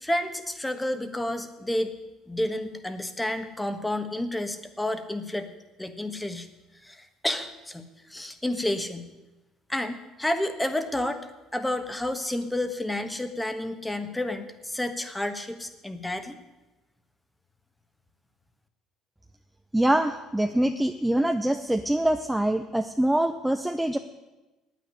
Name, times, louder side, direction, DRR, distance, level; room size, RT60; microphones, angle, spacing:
voice 1, 0.0-2.0 2.3-5.5 5.8-6.5 6.8-9.1 9.7-16.4, left 1 dB, 10° left, 9 dB, 1.4 m, -30 dB
voice 2, 19.7-24.0, right 1 dB, 5° right, 6 dB, 0.7 m, -24 dB
9.4 x 9.3 x 9.9 m, 1.1 s
supercardioid pair, 90°, 0 cm